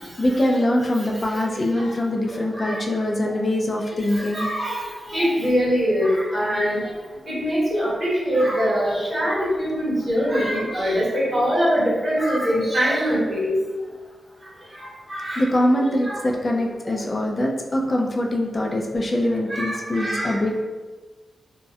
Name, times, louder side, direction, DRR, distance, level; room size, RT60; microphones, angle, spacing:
voice 1, 0.2-4.5 15.4-20.5, left 1 dB, 30° left, 0 dB, 0.3 m, -23 dB
voice 2, 1.1-1.8 2.5-2.8 4.1-6.8 7.3-13.5 14.8-15.4 16.0-16.2 19.5-20.4, equal, 35° right, -10 dB, 1.2 m, -23 dB
2.6 x 2.0 x 2.3 m, 1.3 s
wide cardioid pair, 130°, 0 cm